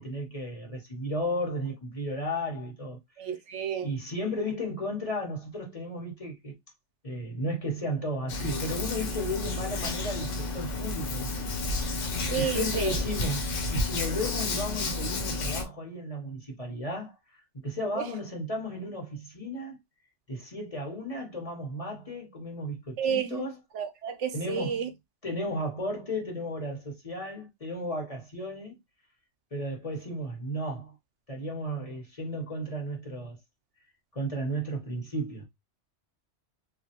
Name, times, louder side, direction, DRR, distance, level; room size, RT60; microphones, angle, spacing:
voice 1, 0.0-3.3 3.8-6.5 7.0-11.5 11.8-12.0 12.4-17.2 17.5-19.8 20.3-23.6 24.3-24.9 25.2-28.8 29.5-30.9 31.3-33.4 34.1-35.5, equal, 35° left, 1.0 m, -34 dB
voice 2, 3.2-3.9 12.3-12.9 23.0-23.4 23.7-24.9, right 7 dB, 85° right, 1.0 m, -31 dB
Hands, 8.3-15.6, left 2 dB, 90° left, 1.1 m, -31 dB
3.1 x 2.5 x 2.8 m
omnidirectional pair, 1.2 m